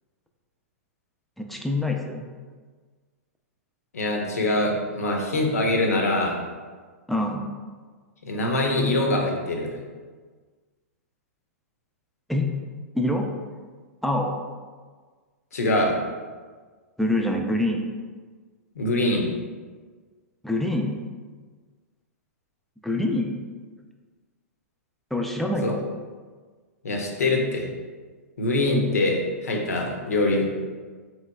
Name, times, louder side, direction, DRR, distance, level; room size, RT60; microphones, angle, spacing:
voice 1, 1.4-2.3 7.1-7.4 12.3-12.5 12.9-13.3 14.0-14.3 17.0-17.9 20.4-21.0 22.8-23.3 25.1-25.8, left 1 dB, ahead, 1 dB, 0.3 m, -25 dB
voice 2, 3.9-6.4 8.2-9.7 15.5-16.0 18.8-19.3 25.6-25.7 26.8-27.7 28.4-30.5, left 2 dB, 85° left, 1 dB, 0.6 m, -23 dB
3.4 x 3.0 x 2.3 m, 1.5 s
hypercardioid pair, 110°, 8 cm